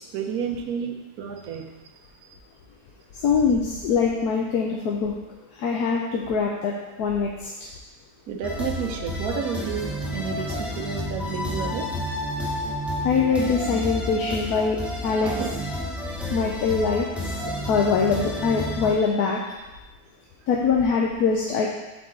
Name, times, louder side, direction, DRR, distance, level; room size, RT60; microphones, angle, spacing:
voice 1, 0.0-1.7 8.3-11.9 15.2-15.5, right 6 dB, 75° right, 3 dB, 1.2 m, -31 dB
voice 2, 3.2-5.2 5.6-7.5 13.0-15.3 16.3-17.3 17.7-19.5 20.5-21.7, left 5 dB, 85° left, -2 dB, 1.2 m, -23 dB
sound 1, 8.4-18.9, equal, ahead, 0.3 m, -30 dB
7.6 x 3.9 x 3.7 m, 1.0 s
omnidirectional pair, 1.6 m